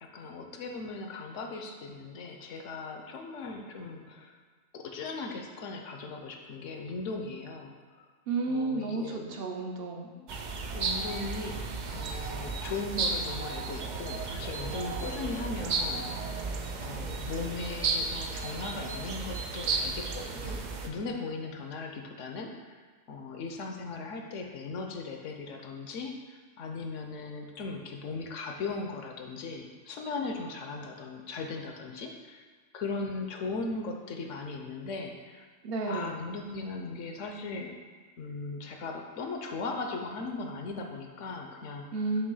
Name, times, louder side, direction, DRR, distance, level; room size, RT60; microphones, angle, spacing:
voice 1, 0.0-4.3 4.7-7.7 8.5-9.4 10.2-10.3 10.7-11.6 11.9-16.1 16.8-20.6 20.8-22.5 23.1-26.1 26.6-32.4 32.7-35.5 35.9-37.7 38.2-41.9, left 3 dB, 70° left, 3 dB, 1.0 m, -38 dB
voice 2, 8.3-10.1 35.6-36.2 41.9-42.3, right 3 dB, 55° right, 2 dB, 0.8 m, -32 dB
sound 1, 10.3-20.9, right 4 dB, 75° right, 0.4 m, -34 dB
6.2 x 3.0 x 5.4 m, 1.5 s
omnidirectional pair, 1.4 m